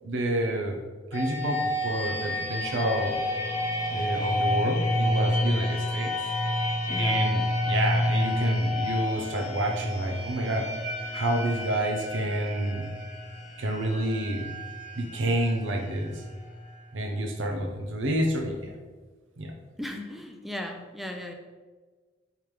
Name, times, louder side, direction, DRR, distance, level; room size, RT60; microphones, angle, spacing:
voice 1, 0.0-0.8 1.1-3.2 3.9-6.1 6.9-10.7 11.1-12.9 13.6-14.5 15.0-16.2 16.9-18.7 19.4-19.5, right 1 dB, 75° right, 2 dB, 0.7 m, -29 dB
sound 1, 1.1-16.8, left 1 dB, 35° left, 0.9 m, -29 dB
voice 2, 6.9-7.3 19.8-21.3, left 1 dB, ahead, 3 dB, 0.3 m, -37 dB
5.7 x 3.5 x 4.7 m, 1.4 s
head